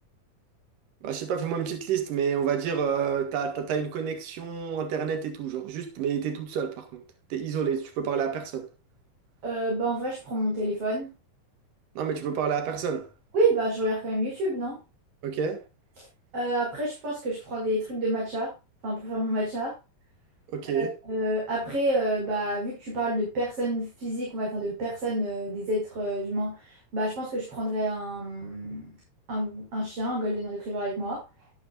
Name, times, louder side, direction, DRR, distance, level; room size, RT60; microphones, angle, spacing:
voice 1, 1.0-7.0 7.3-8.7 12.0-13.1 15.2-15.6 20.5-20.9, right 7 dB, 90° right, 3.3 m, -29 dB
voice 2, 9.4-11.1 13.3-14.8 16.0-16.1 16.3-18.5 18.8-19.8 20.7-28.9 29.3-31.2, right 1 dB, 45° right, 6.2 m, -29 dB
12.5 x 11.5 x 2.4 m
omnidirectional pair, 3.7 m